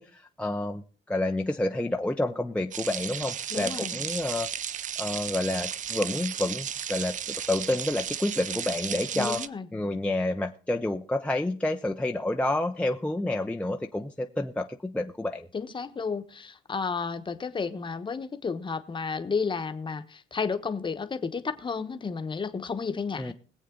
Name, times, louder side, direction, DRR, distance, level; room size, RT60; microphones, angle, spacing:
voice 1, 0.0-4.5 5.0-9.4 9.7-15.5 23.2-23.3, left 1 dB, 5° left, 4 dB, 0.6 m, -29 dB
sound 1, 2.7-9.5, right 9 dB, 40° right, 0.5 m, -34 dB
voice 2, 3.5-3.9 9.1-9.7 15.5-23.3, left 5 dB, 25° left, 8 dB, 1.1 m, -32 dB
21.5 x 8.2 x 3.8 m, 0.41 s
cardioid pair, 135°, 19 cm